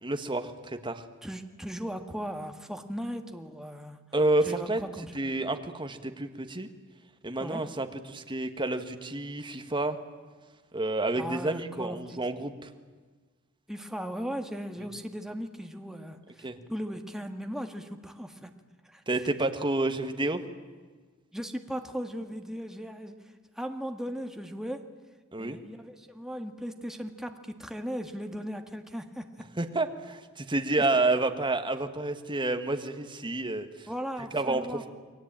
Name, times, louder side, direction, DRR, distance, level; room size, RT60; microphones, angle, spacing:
voice 1, 0.0-1.0 4.1-4.8 5.1-6.7 7.2-10.0 10.7-12.7 16.4-16.6 19.1-20.4 25.3-25.6 29.6-33.7 34.3-34.9, right 2 dB, 25° right, 7 dB, 1.7 m, -29 dB
voice 2, 1.2-4.0 4.4-5.2 7.4-7.6 11.1-12.2 13.7-18.5 18.8-19.0 21.3-23.1 23.5-24.8 25.4-29.3 30.8-30.9 33.9-34.9, equal, ahead, 5 dB, 1.8 m, -37 dB
29.0 x 22.0 x 9.0 m, 1.4 s
head